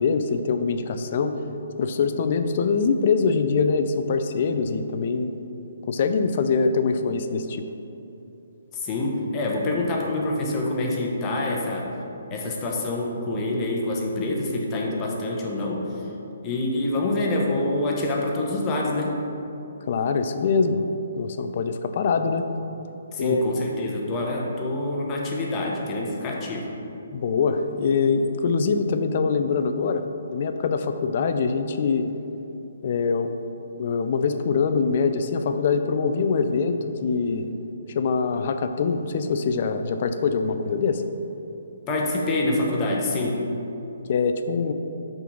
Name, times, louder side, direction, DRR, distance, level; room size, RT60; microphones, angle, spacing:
voice 1, 0.0-1.4 1.8-5.3 5.9-7.6 19.9-20.8 21.2-22.4 23.2-23.4 27.1-32.1 32.8-33.3 33.8-37.5 38.0-41.0 44.1-44.7, left 5 dB, 45° left, 8 dB, 0.4 m, -23 dB
voice 2, 8.7-11.9 12.3-15.8 16.4-19.2 23.1-26.7 41.9-43.4, left 2 dB, 25° left, -2 dB, 1.0 m, -26 dB
5.7 x 3.9 x 5.9 m, 3.0 s
figure-of-eight pair, 135°, 0 cm